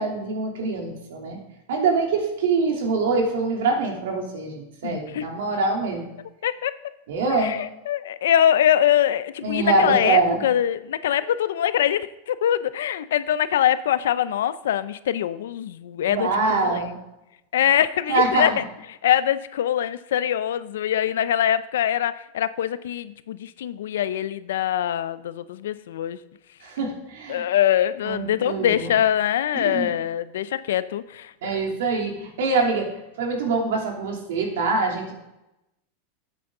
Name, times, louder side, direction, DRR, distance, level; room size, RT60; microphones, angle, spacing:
voice 1, 0.0-1.4 1.7-6.0 7.1-7.5 9.4-10.4 16.1-17.0 18.1-18.6 26.6-27.4 28.0-28.9 29.5-29.9 31.4-32.9 33.2-35.1, right 3 dB, 80° right, 0 dB, 3.0 m, -24 dB
voice 2, 4.8-5.3 6.4-6.7 7.3-16.9 17.5-18.6 18.9-26.2 27.3-31.6, left 10 dB, 90° left, 15 dB, 0.5 m, -23 dB
12.0 x 8.5 x 3.8 m, 0.91 s
supercardioid pair, 145°, 0 cm